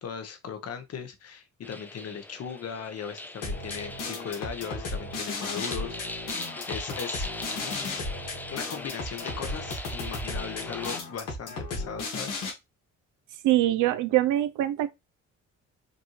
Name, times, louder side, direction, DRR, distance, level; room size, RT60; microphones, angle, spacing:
voice 1, 0.0-6.0 6.7-7.3 7.6-7.9 8.5-12.4, left 7 dB, 55° left, 1.1 m, -38 dB
sound 1, 1.6-11.0, left 1 dB, 5° left, 0.5 m, -40 dB
sound 2, 3.4-12.5, left 3 dB, 90° left, 1.9 m, -35 dB
voice 2, 13.4-14.9, right 14 dB, 85° right, 0.6 m, -23 dB
5.2 x 2.7 x 3.1 m
cardioid pair, 90°, 30 cm